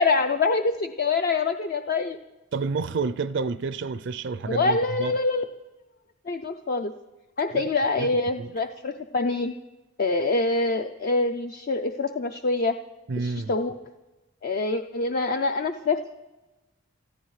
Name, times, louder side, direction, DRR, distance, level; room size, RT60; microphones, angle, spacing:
voice 1, 0.0-2.2 4.4-5.4 6.3-6.9 7.4-9.5 10.0-12.8 13.2-13.7 14.4-16.0, left 3 dB, 45° left, 0.5 m, -25 dB
voice 2, 2.5-5.1 7.5-7.7 8.0-8.1 8.4-8.5 13.1-13.5, right 4 dB, 60° right, 0.4 m, -29 dB
26.5 x 14.0 x 3.2 m
head